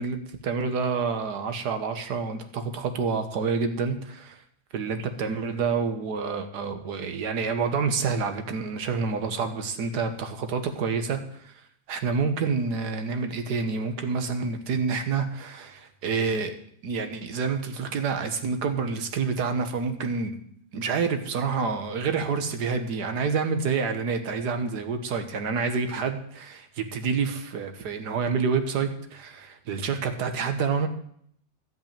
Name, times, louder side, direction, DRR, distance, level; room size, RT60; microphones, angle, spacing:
voice 1, 0.0-4.4 4.7-11.5 11.9-16.5 16.8-20.4 20.7-30.9, right 5 dB, 70° right, 8 dB, 1.7 m, -28 dB
12.5 x 5.5 x 8.8 m, 0.67 s
omnidirectional pair, 1.8 m